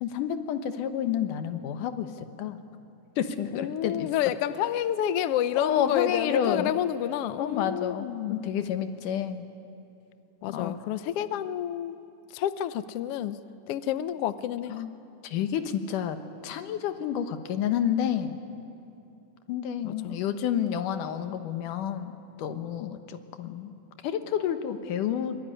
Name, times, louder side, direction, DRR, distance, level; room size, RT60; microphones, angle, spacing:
voice 1, 0.0-2.6 3.2-4.1 5.5-6.7 7.4-9.5 10.5-10.8 14.7-14.9 15.2-18.4 19.5-23.7 24.0-25.4, left 9 dB, 90° left, 8 dB, 2.7 m, -29 dB
voice 2, 3.5-8.4 10.4-12.0 12.3-13.4 13.7-14.7 19.8-20.2, left 11 dB, 75° left, 13 dB, 1.4 m, -29 dB
25.0 x 22.0 x 9.9 m, 2.8 s
omnidirectional pair, 3.6 m